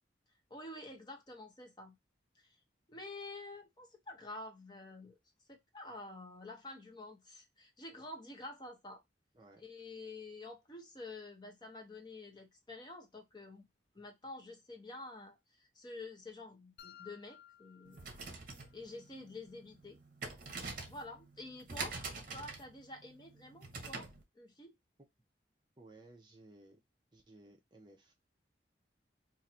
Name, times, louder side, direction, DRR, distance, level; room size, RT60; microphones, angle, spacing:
voice 1, 0.5-2.0 2.3-2.6 2.9-5.2 5.5-9.0 9.6-13.6 13.9-18.0 18.7-20.0 20.9-22.0 22.3-24.7, left 2 dB, 25° left, 0.7 m, -49 dB
sound 1, 16.8-18.8, left 10 dB, 65° left, 0.5 m, -58 dB
sound 2, 17.9-24.2, right 3 dB, 45° right, 0.9 m, -45 dB
voice 2, 25.8-26.8 27.1-28.1, right 2 dB, 25° right, 0.6 m, -58 dB
3.1 x 2.5 x 4.1 m
head